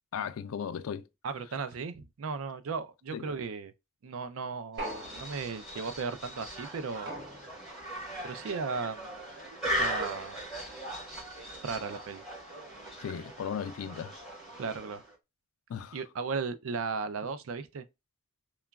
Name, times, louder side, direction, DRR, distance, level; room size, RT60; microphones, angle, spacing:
voice 1, 0.1-1.1 3.1-3.2 13.0-14.2 15.7-16.0, left 7 dB, 85° left, 0.4 m, -36 dB
voice 2, 1.2-3.7 4.0-7.1 8.2-9.1 9.8-10.4 11.6-12.2 14.6-15.0 15.9-17.8, right 5 dB, 80° right, 0.4 m, -36 dB
sound 1, 4.8-15.2, equal, ahead, 1.3 m, -39 dB
sound 2, 4.8-5.8 7.1-7.9, right 1 dB, 50° right, 0.9 m, -41 dB
2.9 x 2.3 x 2.2 m
head